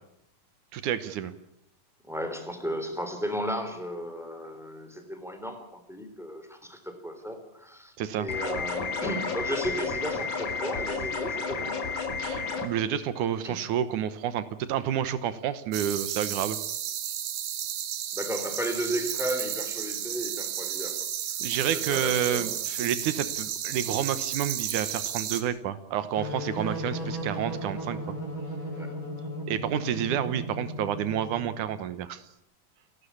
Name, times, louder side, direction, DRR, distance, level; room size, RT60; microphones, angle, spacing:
voice 1, 0.7-1.3 8.0-8.3 12.2-16.6 21.4-28.0 29.5-32.2, right 9 dB, 70° right, 13 dB, 2.4 m, -29 dB
voice 2, 2.0-11.9 13.4-13.6 18.1-21.3 21.6-22.6 28.7-28.9, equal, ahead, 6 dB, 3.1 m, -34 dB
sound 1, 8.3-12.7, left 4 dB, 60° left, 3.4 m, -31 dB
sound 2, 15.7-25.4, right 10 dB, 85° right, 3.4 m, -33 dB
sound 3, 26.2-31.7, equal, 35° left, 4.8 m, -36 dB
29.5 x 12.0 x 8.5 m, 0.77 s
omnidirectional pair, 4.1 m